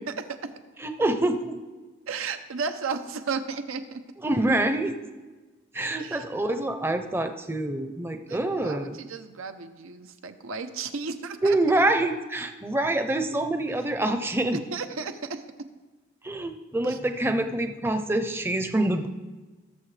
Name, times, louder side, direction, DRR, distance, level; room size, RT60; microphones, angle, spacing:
voice 1, 0.1-0.5 2.1-4.0 6.0-6.3 8.3-11.6 13.7-13.8 14.5-15.7 16.8-17.0, right 5 dB, 85° right, 9 dB, 0.8 m, -34 dB
voice 2, 0.8-1.6 4.2-5.0 5.7-9.0 11.4-14.6 16.2-19.1, right 1 dB, 10° right, 7 dB, 0.6 m, -26 dB
19.5 x 7.1 x 3.3 m, 1.3 s
head